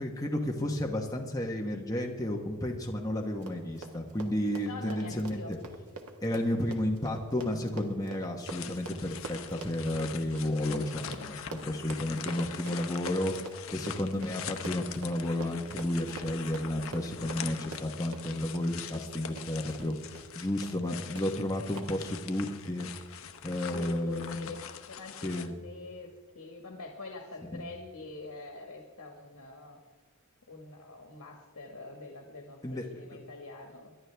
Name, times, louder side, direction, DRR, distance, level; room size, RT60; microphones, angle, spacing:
voice 1, 0.0-5.4 6.2-13.3 13.7-19.9 20.3-22.9 23.4-24.5 25.2-25.5 27.5-27.6 32.6-32.9, left 1 dB, 15° left, 0 dB, 1.1 m, -32 dB
Run, 3.3-19.9 20.2-20.3 20.6-20.9 21.2-21.3 21.8-21.9, right 2 dB, 85° right, 1.6 m, -45 dB
voice 2, 4.6-5.5 20.8-21.0 23.7-29.8 30.5-33.9, left 3 dB, 85° left, 1 dB, 1.6 m, -44 dB
sound 1, 8.4-25.5, left 7 dB, 65° left, 0.8 m, -43 dB
24.0 x 11.0 x 3.4 m, 1.4 s
head